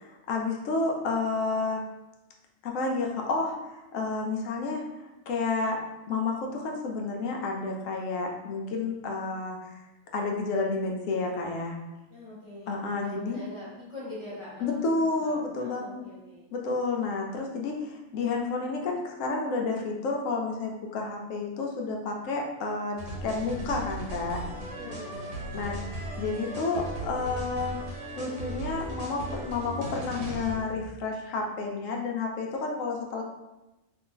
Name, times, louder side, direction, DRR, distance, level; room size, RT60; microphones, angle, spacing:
voice 1, 0.3-1.8 2.6-4.8 5.3-5.8 6.1-9.7 10.1-11.8 12.7-13.4 14.6-16.0 16.5-24.4 25.5-25.8 26.2-27.8 28.2-33.2, left 3 dB, 80° left, 1 dB, 0.9 m, -30 dB
voice 2, 12.1-16.5 24.6-25.5, left 1 dB, 25° left, -8 dB, 1.1 m, -43 dB
sound 1, 23.0-30.9, right 1 dB, 65° right, 1.2 m, -37 dB
2.6 x 2.5 x 3.7 m, 0.99 s
omnidirectional pair, 1.4 m